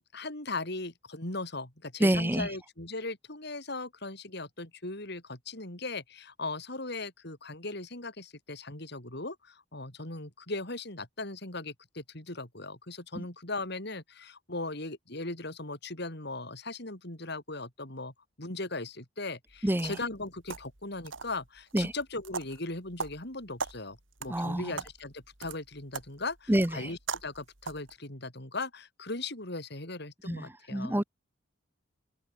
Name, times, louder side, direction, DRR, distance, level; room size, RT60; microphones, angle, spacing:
voice 1, 0.1-31.0, left 2 dB, 60° left, 5.3 m, -38 dB
voice 2, 2.0-2.5 13.2-13.3 19.6-19.9 21.7-21.9 24.3-24.7 26.5-26.9 30.3-31.0, right 1 dB, 10° right, 0.9 m, -27 dB
sound 1, 19.5-28.0, right 5 dB, 90° right, 3.4 m, -42 dB
head